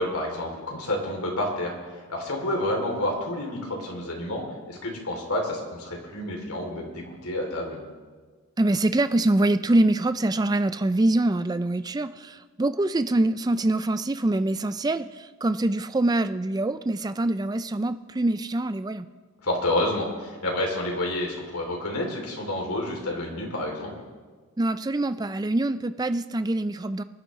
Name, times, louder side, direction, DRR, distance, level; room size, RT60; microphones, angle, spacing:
voice 1, 0.0-4.4 4.7-7.8 19.4-23.9, left 1 dB, 80° left, 0 dB, 3.1 m, -29 dB
voice 2, 8.6-19.1 24.6-27.0, right 2 dB, 20° right, 11 dB, 0.4 m, -24 dB
24.5 x 10.5 x 3.2 m, 1.5 s
head